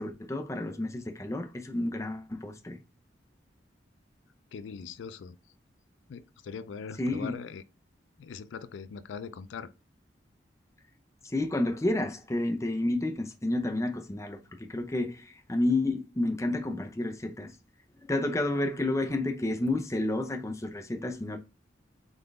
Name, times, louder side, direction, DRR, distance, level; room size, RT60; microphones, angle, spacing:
voice 1, 0.0-2.8 7.0-7.4 11.2-17.6 18.0-21.4, left 2 dB, 15° left, 0.6 m, -30 dB
voice 2, 4.5-5.4 6.1-7.6 8.2-9.7, left 5 dB, 90° left, 0.4 m, -41 dB
4.0 x 3.8 x 3.4 m
head